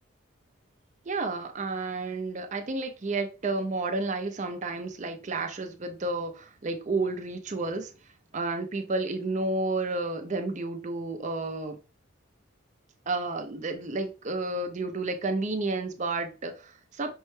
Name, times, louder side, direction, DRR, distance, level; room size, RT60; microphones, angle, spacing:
voice 1, 1.1-7.9 8.3-11.8 13.1-17.1, right 3 dB, 35° right, 0.5 m, -31 dB
5.4 x 2.1 x 3.1 m
head